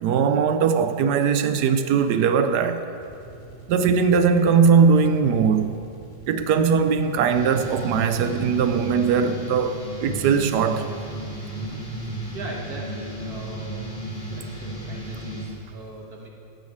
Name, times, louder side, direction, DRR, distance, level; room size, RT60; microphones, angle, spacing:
voice 1, 0.0-2.8 3.7-5.7 6.3-10.9, right 6 dB, 75° right, 1.0 m, -20 dB
sound 1, 2.9-9.5, right 3 dB, 20° left, 1.7 m, -44 dB
sound 2, 7.3-15.4, right 1 dB, 70° left, 4.6 m, -34 dB
voice 2, 12.3-13.8 14.3-16.3, right 1 dB, 55° right, 2.0 m, -39 dB
13.0 x 6.5 x 8.0 m
omnidirectional pair, 2.1 m